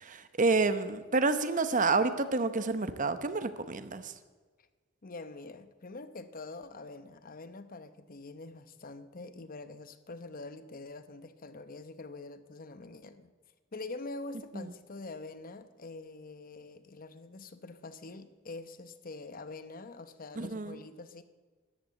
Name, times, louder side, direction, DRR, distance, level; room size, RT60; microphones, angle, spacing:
voice 1, 0.0-4.1 14.5-14.7 20.4-20.8, right 3 dB, 40° right, 11 dB, 0.9 m, -29 dB
voice 2, 5.0-13.3 13.7-21.2, left 3 dB, 45° left, 11 dB, 0.9 m, -45 dB
13.5 x 11.0 x 7.9 m, 1.4 s
head